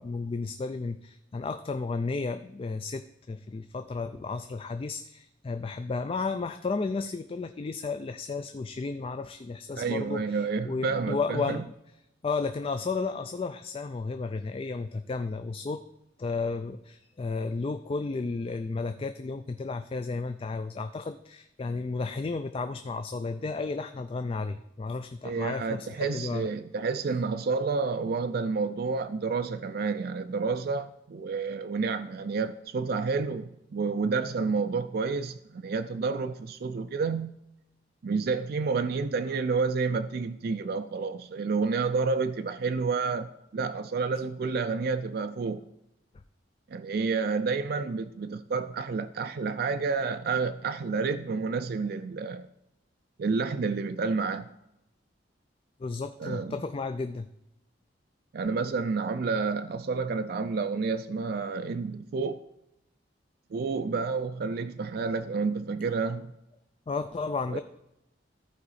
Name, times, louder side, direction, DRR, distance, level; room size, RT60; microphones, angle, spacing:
voice 1, 0.0-11.7 12.2-15.8 16.2-26.5 55.8-57.3 66.9-67.6, left 4 dB, 30° left, 0.3 m, -33 dB
voice 2, 9.8-11.6 25.2-37.3 38.0-45.6 46.7-52.5 53.2-54.5 56.2-56.6 58.3-62.4 63.5-66.3 67.5-67.6, right 4 dB, 55° right, 0.4 m, -30 dB
14.5 x 4.8 x 4.1 m
head